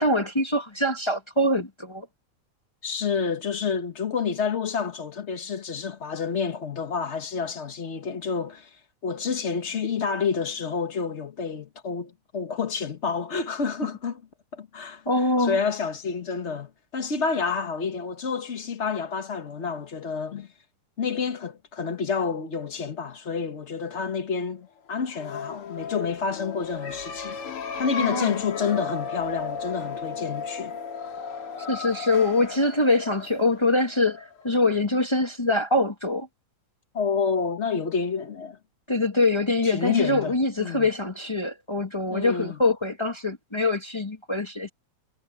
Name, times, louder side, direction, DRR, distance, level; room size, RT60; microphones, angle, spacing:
voice 1, 0.0-2.1 15.0-15.6 28.0-28.4 31.7-36.3 38.9-44.7, left 2 dB, 25° left, 0.6 m, -24 dB
voice 2, 2.8-8.7 9.0-14.2 14.5-15.0 15.4-20.5 21.0-27.4 27.8-30.8 36.9-38.6 39.6-40.9 42.1-42.6, left 5 dB, 70° left, 0.6 m, -29 dB
sound 1, 25.0-34.5, left 5 dB, 50° left, 2.6 m, -35 dB
omnidirectional pair, 3.4 m